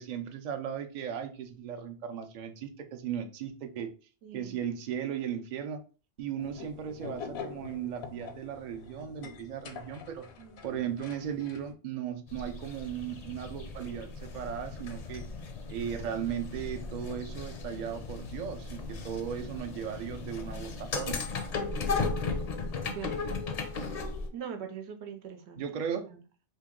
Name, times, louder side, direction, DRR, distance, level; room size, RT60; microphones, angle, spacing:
voice 1, 0.0-3.9 4.3-5.8 6.2-10.3 10.6-15.3 15.7-21.2 25.6-26.1, right 9 dB, 55° right, 0.5 m, -36 dB
voice 2, 4.2-4.6 10.4-10.6 22.8-23.2 24.3-25.6 26.1-26.2, right 8 dB, 85° right, 0.9 m, -41 dB
sound 1, 6.4-11.7, left 6 dB, 75° left, 0.8 m, -45 dB
sound 2, 12.3-24.3, left 4 dB, 50° left, 0.5 m, -36 dB
2.8 x 2.8 x 3.6 m
omnidirectional pair, 1.1 m